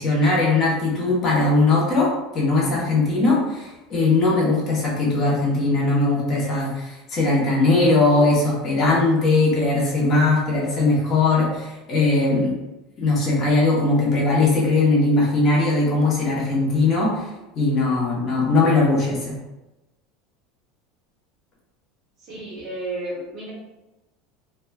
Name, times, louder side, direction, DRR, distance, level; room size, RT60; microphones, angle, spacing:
voice 1, 0.0-12.6 13.0-17.3 17.6-19.3, left 3 dB, 30° left, -4 dB, 0.7 m, -20 dB
voice 2, 22.2-23.5, right 2 dB, 35° right, -4 dB, 0.7 m, -32 dB
2.9 x 2.2 x 2.2 m, 1.0 s
cardioid pair, 170°, 0 cm